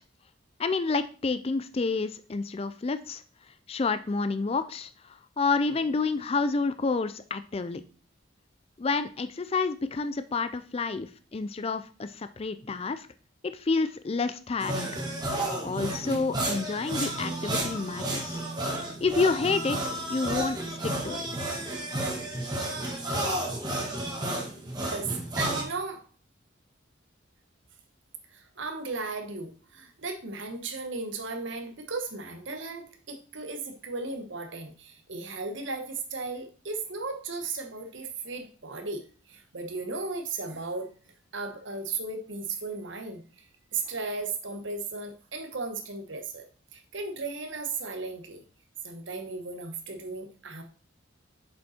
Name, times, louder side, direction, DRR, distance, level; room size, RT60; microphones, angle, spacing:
voice 1, 0.6-3.2 3.7-4.9 5.4-7.8 8.8-13.1 13.5-14.9 15.6-18.4 19.0-19.8 20.1-20.6 20.8-21.2, left 4 dB, 30° left, 12 dB, 0.4 m, -29 dB
sound 1, 14.6-25.6, right 1 dB, 20° right, 1.6 m, -32 dB
voice 2, 25.4-26.0 28.3-40.9 41.3-43.4 43.7-46.4 46.7-48.4 48.8-50.6, right 3 dB, 65° right, 6 dB, 1.3 m, -36 dB
7.0 x 5.3 x 4.3 m, 0.39 s
head